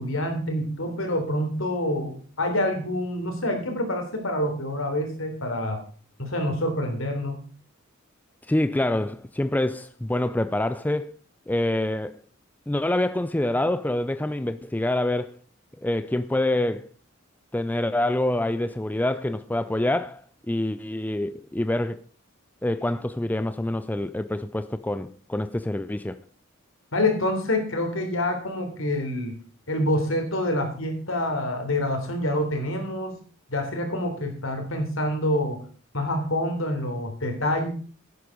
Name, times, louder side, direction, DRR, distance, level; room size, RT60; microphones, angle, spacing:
voice 1, 0.0-5.8 6.2-7.4 26.9-29.4 29.7-33.2 33.5-35.6 35.9-37.7, left 1 dB, 75° left, 3.5 m, -27 dB
voice 2, 8.5-11.1 11.5-12.1 12.7-15.4 15.8-16.9 17.5-22.0 22.6-26.2, left 1 dB, 10° left, 0.4 m, -26 dB
11.0 x 9.5 x 5.2 m
head